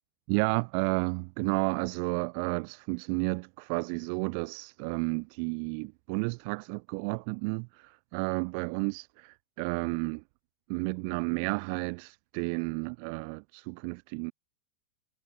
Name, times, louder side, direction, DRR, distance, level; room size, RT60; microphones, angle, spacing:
voice 1, 0.3-10.2 10.7-14.3, right 40 dB or more, 45° right, 2.4 m, -32 dB
figure-of-eight pair, 90°, 0 cm